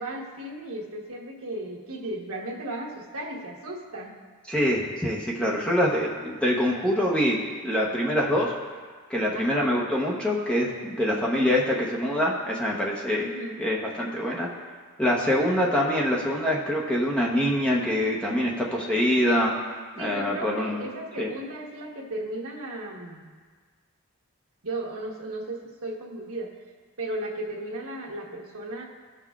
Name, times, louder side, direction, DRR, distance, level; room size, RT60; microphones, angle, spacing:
voice 1, 0.0-4.1 9.3-9.8 11.1-11.3 13.2-13.5 20.0-23.3 24.6-26.5 27.0-28.8, right 1 dB, 80° right, -1 dB, 1.2 m, -35 dB
voice 2, 4.5-8.5 9.1-13.3 13.6-14.5 15.0-19.5 20.0-20.8 21.2-21.3, equal, 5° left, -3 dB, 0.9 m, -25 dB
15.0 x 5.8 x 2.4 m, 1.5 s
head